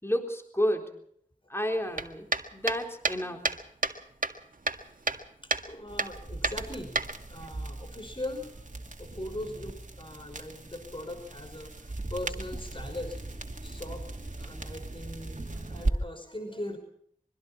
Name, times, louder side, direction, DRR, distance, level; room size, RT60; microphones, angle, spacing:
voice 1, 0.0-1.0 1.5-3.5, equal, 15° left, 3 dB, 3.9 m, -31 dB
sound 1, 2.0-4.0 4.2-5.2 5.5-5.7 6.0-6.1 6.4-7.5, right 2 dB, 80° right, 1.9 m, -30 dB
voice 2, 5.4-7.0 7.3-8.5 9.0-13.2 13.6-14.0 14.4-16.8, left 1 dB, 40° left, 6 dB, 5.5 m, -40 dB
sound 2, 5.9-15.9, right 2 dB, 65° right, 2.7 m, -38 dB
25.0 x 24.0 x 4.3 m, 0.66 s
wide cardioid pair, 40°, 14 cm